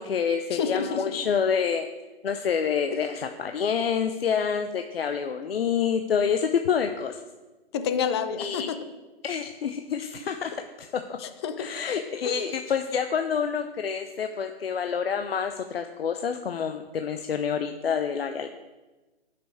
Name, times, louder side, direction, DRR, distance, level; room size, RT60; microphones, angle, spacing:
voice 1, 0.0-1.9 2.2-7.2 8.4-8.7 9.2-10.5 10.8-11.0 11.6-18.5, left 7 dB, 70° left, 6 dB, 0.8 m, -27 dB
voice 2, 0.5-1.0 7.7-8.8 11.2-11.7 12.1-12.4, left 7 dB, 25° left, 9 dB, 0.7 m, -29 dB
11.0 x 6.0 x 4.7 m, 1.2 s
hypercardioid pair, 150°, 31 cm